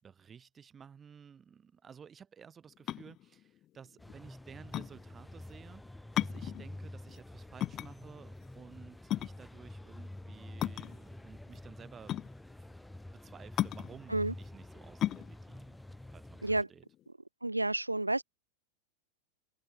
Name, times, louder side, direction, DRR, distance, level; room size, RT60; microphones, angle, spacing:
voice 1, 0.0-12.2 12.6-12.7 13.1-15.8 16.1-16.9, right 7 dB, 20° right, 7.8 m, -54 dB
sound 1, 2.7-17.1, left 13 dB, 30° left, 1.0 m, -37 dB
sound 2, 4.0-16.6, left 1 dB, 5° left, 4.1 m, -48 dB
voice 2, 17.4-18.2, right 2 dB, 85° right, 0.5 m, -30 dB
figure-of-eight pair, 90°, 0 cm